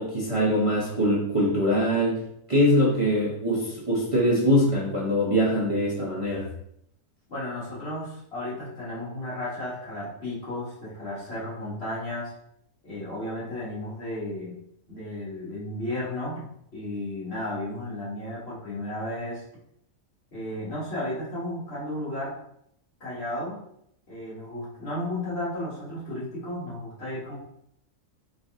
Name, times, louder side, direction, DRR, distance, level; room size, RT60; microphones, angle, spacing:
voice 1, 0.0-2.2 2.5-6.5, equal, 30° right, -6 dB, 0.8 m, -23 dB
voice 2, 7.3-12.3 12.8-14.5 14.9-16.4 16.7-19.4 20.3-22.3 23.0-23.6 24.1-27.3, left 1 dB, 50° left, -7 dB, 1.9 m, -33 dB
4.0 x 3.3 x 3.6 m, 0.74 s
omnidirectional pair, 1.4 m